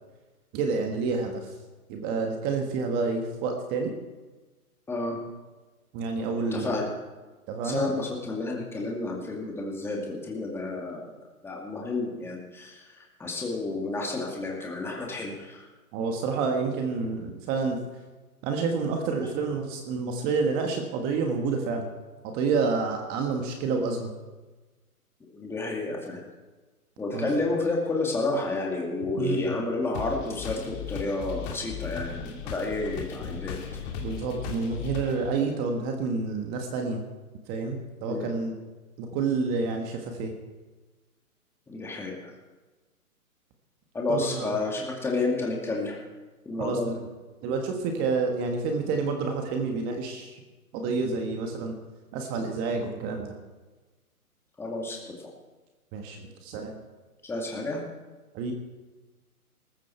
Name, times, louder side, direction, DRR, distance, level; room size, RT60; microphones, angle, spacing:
voice 1, 0.5-1.5 1.9-3.9 5.9-6.7 7.5-7.9 15.9-17.8 18.4-21.9 22.2-24.1 27.1-27.3 29.2-29.4 34.0-37.0 37.5-38.6 39.0-40.3 44.1-44.5 46.6-46.9 47.4-50.4 50.7-51.7 52.1-53.3 55.9-56.2 56.4-56.7 58.3-58.5, right 4 dB, 20° right, 4 dB, 1.5 m, -29 dB
voice 2, 4.9-5.2 6.5-6.9 7.6-11.1 11.4-15.7 25.3-26.2 27.0-33.8 38.1-38.3 41.7-42.3 43.9-46.0 46.5-47.0 54.6-55.2 57.2-57.8, left 2 dB, 5° left, -1 dB, 2.2 m, -30 dB
sound 1, 29.9-35.3, left 7 dB, 25° left, 2.4 m, -37 dB
19.5 x 14.5 x 4.5 m, 1.3 s
hypercardioid pair, 145°, 45 cm